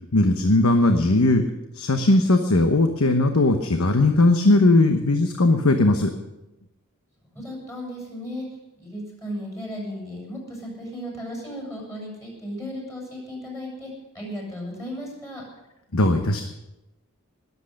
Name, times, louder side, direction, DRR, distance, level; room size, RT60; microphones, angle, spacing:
voice 1, 0.1-1.4 1.7-6.1 15.9-16.4, left 2 dB, 75° left, 6 dB, 1.1 m, -18 dB
voice 2, 7.3-8.5 8.8-15.4, equal, 15° left, -1 dB, 6.9 m, -35 dB
20.5 x 8.3 x 6.5 m, 0.95 s
head